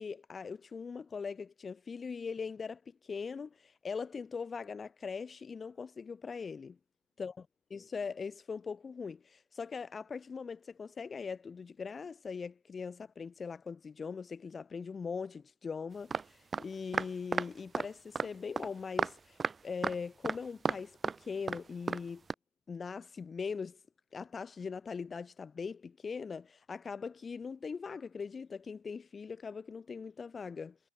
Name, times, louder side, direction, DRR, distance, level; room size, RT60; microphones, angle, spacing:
voice 1, 0.0-6.8 7.2-7.3 7.7-22.2 22.7-23.8 24.1-30.8, left 5 dB, 15° left, 0.8 m, -41 dB
sound 1, 16.1-16.2 16.5-16.6 16.9-17.5 17.7-17.9 18.2-18.3 18.6-18.7 19.0-19.1 19.4-19.5 19.8-20.0 20.2-20.8 21.0-21.2 21.5-21.6 21.9-22.0 22.3-22.4, right 5 dB, 15° right, 0.3 m, -32 dB
figure-of-eight pair, 90°, 0 cm